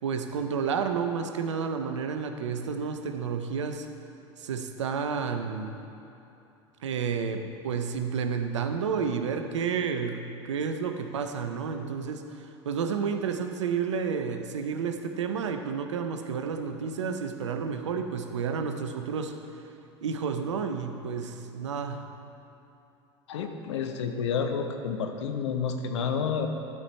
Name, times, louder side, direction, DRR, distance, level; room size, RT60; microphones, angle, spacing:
voice 1, 0.0-3.9 4.4-5.8 6.8-19.4 20.0-22.1, right 6 dB, 80° right, 7 dB, 0.6 m, -31 dB
voice 2, 23.3-26.5, left 6 dB, 75° left, 5 dB, 0.7 m, -30 dB
12.0 x 4.6 x 4.4 m, 2.9 s
hypercardioid pair, 80°, 15 cm